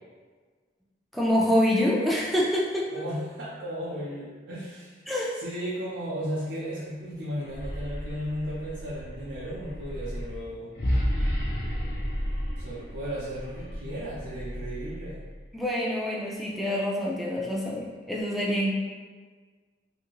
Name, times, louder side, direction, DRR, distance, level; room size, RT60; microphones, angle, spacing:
voice 1, 1.1-2.9 5.1-5.3 15.5-18.7, left 1 dB, ahead, -5 dB, 0.4 m, -26 dB
voice 2, 2.9-5.0 5.4-10.7 12.6-15.2, equal, 85° right, -7 dB, 0.6 m, -35 dB
sound 1, 7.3-15.5, equal, 60° left, 0.6 m, -32 dB
2.6 x 2.6 x 2.9 m, 1.4 s
head